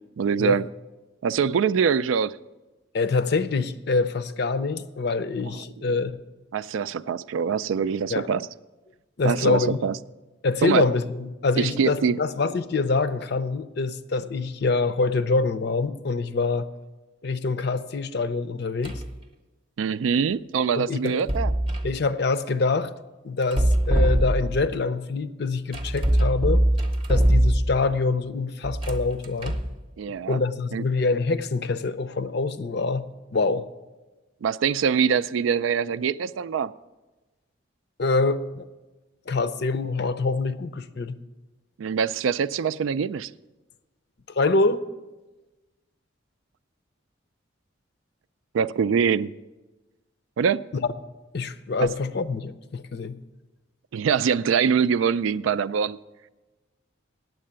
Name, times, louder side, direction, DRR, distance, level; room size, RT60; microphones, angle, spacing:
voice 1, 0.2-0.7 1.2-2.4 5.4-5.6 6.5-8.5 9.2-10.0 10.6-10.9 11.6-12.2 19.8-21.5 30.0-30.4 30.7-30.8 34.4-36.7 41.8-43.3 48.5-49.3 50.4-50.6 53.9-56.0, right 6 dB, 85° right, 0.3 m, -24 dB
voice 2, 2.9-6.2 8.1-8.3 9.2-9.8 10.4-16.7 17.2-19.0 20.7-21.2 21.8-22.9 23.2-26.6 27.1-29.6 30.3-33.7 38.0-38.7 39.3-41.2 44.3-44.8 51.3-53.2, left 3 dB, 55° left, 0.5 m, -25 dB
sound 1, 18.8-19.2 21.1-21.9 23.4-24.7 25.7-27.9 28.6-29.8, right 1 dB, 30° right, 0.8 m, -22 dB
9.5 x 7.5 x 8.8 m
head